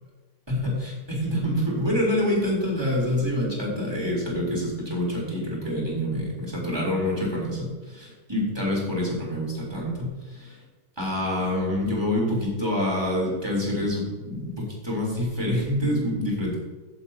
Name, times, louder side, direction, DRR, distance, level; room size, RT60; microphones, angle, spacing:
voice 1, 0.5-10.6 11.0-16.6, left 1 dB, 15° right, -5 dB, 3.6 m, -26 dB
16.0 x 7.8 x 2.9 m, 1.3 s
omnidirectional pair, 1.8 m